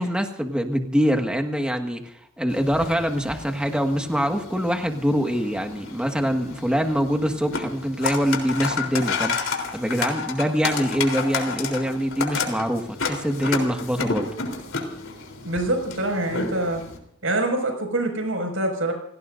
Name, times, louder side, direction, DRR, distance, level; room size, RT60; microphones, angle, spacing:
voice 1, 0.0-14.3, equal, 5° right, 4 dB, 1.7 m, -24 dB
sound 1, 2.5-17.0, left 4 dB, 85° left, 3.6 m, -31 dB
voice 2, 15.4-16.8 17.2-18.9, right 1 dB, 85° right, 3 dB, 5.8 m, -25 dB
29.5 x 18.0 x 2.6 m, 0.72 s
head